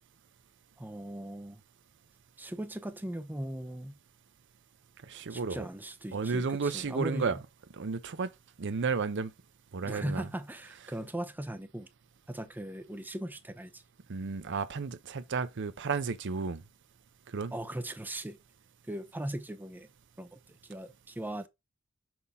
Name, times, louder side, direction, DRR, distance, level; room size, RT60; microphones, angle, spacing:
voice 1, 0.8-1.6 2.4-4.0 5.3-7.3 9.8-11.9 12.3-13.8 17.5-18.4 18.9-19.9 20.2-20.4 20.7-21.5, right 1 dB, 10° right, 0.6 m, -38 dB
voice 2, 5.1-5.7 6.1-7.4 7.7-8.3 8.6-9.3 9.7-10.3 14.1-16.6 17.3-17.5, right 5 dB, 60° right, 0.6 m, -32 dB
6.1 x 5.6 x 3.5 m
head